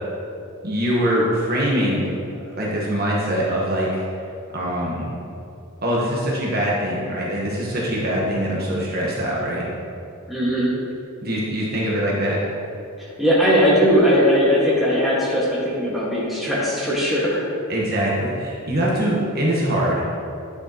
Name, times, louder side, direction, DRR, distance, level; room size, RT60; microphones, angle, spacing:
voice 1, 0.6-2.1 2.5-4.0 4.5-5.1 5.8-9.6 11.2-12.4 17.7-20.0, equal, 45° right, -5 dB, 1.3 m, -23 dB
voice 2, 10.3-10.7 13.0-17.4, equal, ahead, -8 dB, 1.7 m, -19 dB
10.0 x 6.5 x 3.0 m, 2.6 s
head